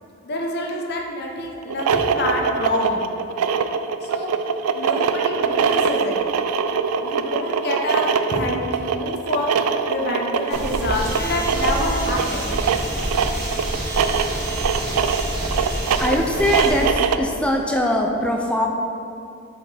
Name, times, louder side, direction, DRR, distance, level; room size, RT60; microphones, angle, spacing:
voice 1, 0.2-3.0 4.0-4.3 4.7-6.2 7.0-9.5 9.9-12.6, left 1 dB, 50° left, 0 dB, 0.9 m, -26 dB
sound 1, 1.6-17.3, right 6 dB, 90° right, 0.3 m, -23 dB
sound 2, 10.5-16.9, right 1 dB, 45° right, 1.4 m, -27 dB
voice 2, 16.0-18.7, left 1 dB, 5° left, 1 dB, 0.4 m, -21 dB
7.8 x 5.0 x 3.4 m, 2.6 s
head